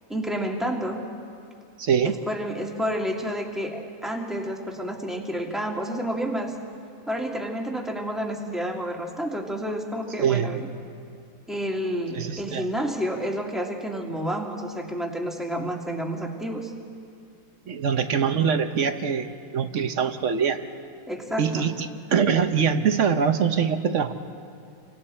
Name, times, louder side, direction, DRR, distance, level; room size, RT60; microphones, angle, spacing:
voice 1, 0.1-1.0 2.0-6.5 7.1-10.7 11.5-16.7 21.1-21.7, equal, ahead, -1 dB, 1.8 m, -30 dB
voice 2, 1.8-2.1 10.2-10.6 12.1-12.7 17.7-20.6 21.4-24.1, right 7 dB, 55° right, 8 dB, 0.9 m, -23 dB
29.5 x 24.5 x 4.3 m, 2.4 s
omnidirectional pair, 2.1 m